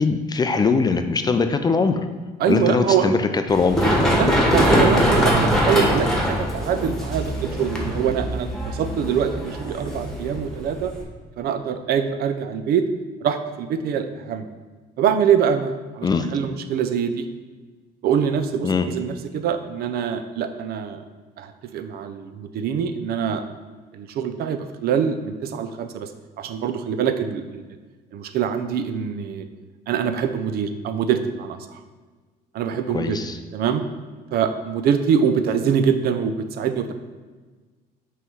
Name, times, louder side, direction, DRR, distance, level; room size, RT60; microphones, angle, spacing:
voice 1, 0.0-2.0 2.5-3.9 16.0-16.3 18.6-18.9 32.9-33.4, left 4 dB, 25° left, 8 dB, 0.4 m, -21 dB
voice 2, 2.4-3.1 4.1-10.9 11.4-12.9 13.2-14.5 15.0-17.3 18.0-21.0 21.4-23.4 23.9-26.1 26.4-27.6 28.1-29.5 29.9-31.8 32.5-33.2 33.5-33.8 34.3-36.9, right 7 dB, 65° right, 8 dB, 0.6 m, -24 dB
Run, 3.5-11.0, equal, 5° left, 1.2 m, -22 dB
5.7 x 3.2 x 5.5 m, 1.3 s
cardioid pair, 110°, 17 cm